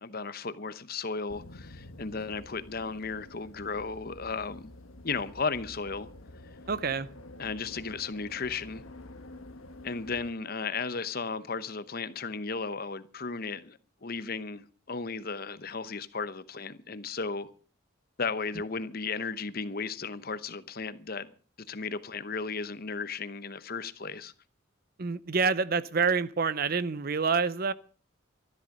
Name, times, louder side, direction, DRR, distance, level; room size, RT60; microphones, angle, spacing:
voice 1, 0.0-4.7 5.0-6.1 7.4-8.8 9.8-17.5 18.2-21.3 21.7-24.3, left 4 dB, 45° left, 0.9 m, -35 dB
sound 1, 1.3-10.3, left 2 dB, 80° left, 1.4 m, -49 dB
voice 2, 6.7-7.1 25.0-27.7, right 5 dB, 45° right, 0.6 m, -27 dB
13.5 x 12.0 x 6.6 m
head